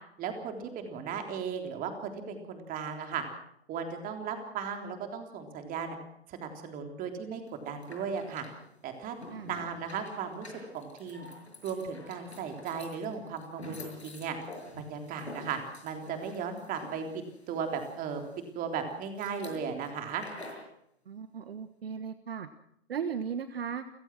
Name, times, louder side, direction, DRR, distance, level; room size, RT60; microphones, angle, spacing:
voice 1, 0.2-3.2 3.7-6.0 6.3-8.5 8.8-9.2 9.5-11.3 11.6-14.4 14.8-18.2 18.5-20.3, right 6 dB, 25° right, 5 dB, 3.7 m, -36 dB
sound 1, 7.5-20.7, left 2 dB, 80° left, 6.7 m, -49 dB
voice 2, 21.1-22.5 22.9-23.8, right 7 dB, 65° right, 11 dB, 1.4 m, -36 dB
29.5 x 16.0 x 6.3 m, 0.71 s
figure-of-eight pair, 105°, 32 cm